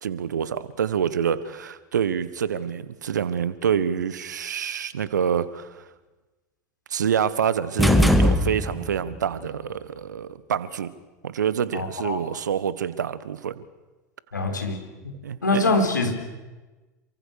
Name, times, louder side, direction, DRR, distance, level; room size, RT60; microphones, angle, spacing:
voice 1, 0.0-5.8 6.9-10.9 11.2-13.6 15.2-15.7, right 8 dB, 75° right, 16 dB, 1.4 m, -27 dB
sound 1, 7.8-9.0, left 1 dB, ahead, 2.2 m, -19 dB
voice 2, 11.7-12.2 14.3-14.8 15.4-16.2, left 2 dB, 85° left, 4 dB, 4.2 m, -24 dB
28.0 x 24.0 x 6.6 m, 1.2 s
figure-of-eight pair, 80°, 10 cm